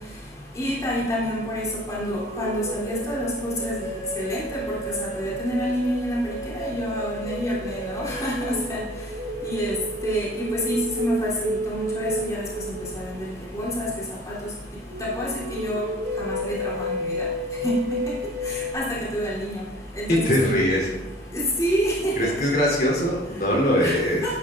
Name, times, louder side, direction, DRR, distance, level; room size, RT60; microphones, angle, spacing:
voice 1, 0.6-3.7 4.2-6.2 6.5-8.3 8.7-8.8 9.4-9.7 10.0-10.3 10.6-11.3 11.7-12.4 13.5-13.9 15.2-15.3 15.6-15.8 16.2-16.9 17.2-17.3 17.6-17.7 18.7-18.8 19.1-19.5 20.0-20.6 21.3-22.1 23.5-23.9 24.2-24.4, equal, 20° left, -7 dB, 3.4 m, -27 dB
sound 1, 2.1-13.4 14.8-18.7, equal, 50° right, 4.0 m, -32 dB
voice 2, 20.1-20.9 22.2-24.3, equal, 55° left, -2 dB, 3.6 m, -22 dB
17.0 x 10.5 x 2.6 m, 1.1 s
head